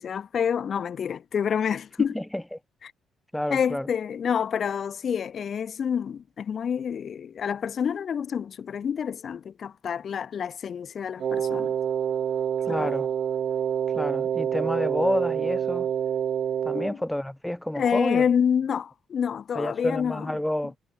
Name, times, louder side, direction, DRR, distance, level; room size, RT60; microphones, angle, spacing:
voice 1, 0.0-2.1 2.8-2.9 3.5-11.7 12.7-12.9 16.7-17.0 17.8-20.3, left 7 dB, 55° left, 0.5 m, -28 dB
voice 2, 2.1-2.6 3.3-3.9 12.7-13.1 13.9-15.9 16.6-18.2 19.5-20.7, left 1 dB, 5° left, 2.2 m, -29 dB
Wind instrument woodwind instrument, 11.2-16.9, right 8 dB, 60° right, 0.7 m, -27 dB
cardioid pair, 90°, 0 cm